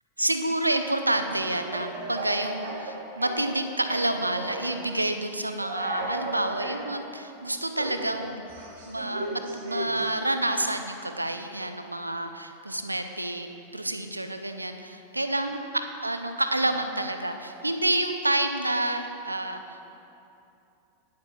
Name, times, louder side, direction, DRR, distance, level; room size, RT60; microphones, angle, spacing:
voice 1, 0.2-8.4 8.8-13.5 13.7-20.0, right 1 dB, 85° right, 7 dB, 0.6 m, -29 dB
Speech / Cough, 1.3-3.6 3.9-4.7 5.6-6.8 7.7-10.1, right 2 dB, 55° right, 2.0 m, -35 dB
9.6 x 8.0 x 4.5 m, 2.8 s
figure-of-eight pair, 90°, 0 cm